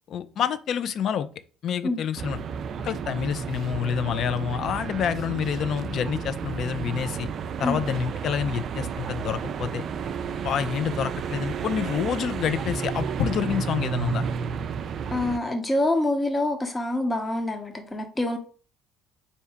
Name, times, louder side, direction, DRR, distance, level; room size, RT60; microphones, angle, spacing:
voice 1, 0.1-1.3 1.6-2.4 2.8-7.3 7.6-9.8 10.4-14.3, left 8 dB, 55° left, 0.4 m, -28 dB
sound 1, 2.1-15.4, right 6 dB, 50° right, 0.4 m, -32 dB
voice 2, 15.1-18.4, left 1 dB, 20° left, 0.8 m, -26 dB
4.4 x 2.8 x 3.4 m
hypercardioid pair, 60°, 0 cm